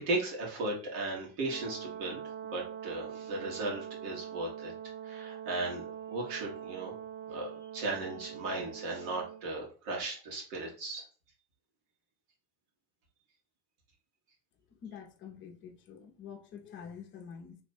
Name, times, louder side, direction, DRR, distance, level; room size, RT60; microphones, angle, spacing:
voice 1, 0.1-4.7 5.0-6.9 7.3-11.0, right 2 dB, 80° right, 1.7 m, -36 dB
Brass instrument, 1.5-9.4, right 10 dB, 50° right, 0.4 m, -43 dB
voice 2, 14.8-17.6, left 7 dB, 30° left, 0.7 m, -47 dB
3.3 x 2.2 x 4.3 m
cardioid pair, 155°, 39 cm